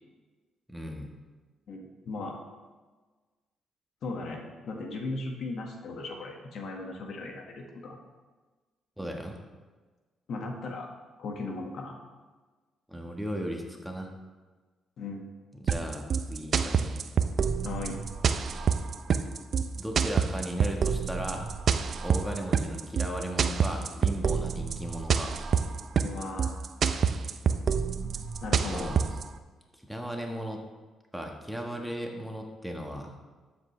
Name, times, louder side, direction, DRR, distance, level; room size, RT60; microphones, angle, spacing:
voice 1, 0.7-1.1 9.0-9.3 12.9-14.1 15.6-16.9 19.7-21.5 22.0-25.4 28.7-29.1 29.8-30.6 31.1-33.1, equal, ahead, 1 dB, 1.4 m, -36 dB
voice 2, 1.7-2.4 4.0-8.0 10.3-10.9 11.2-12.0 15.0-15.2 17.6-18.0 26.0-26.6 28.4-29.0, left 3 dB, 65° left, 1 dB, 1.7 m, -37 dB
sound 1, 15.7-29.2, right 6 dB, 55° right, 0.6 m, -27 dB
12.0 x 8.0 x 3.3 m, 1.3 s
cardioid pair, 90°, 0 cm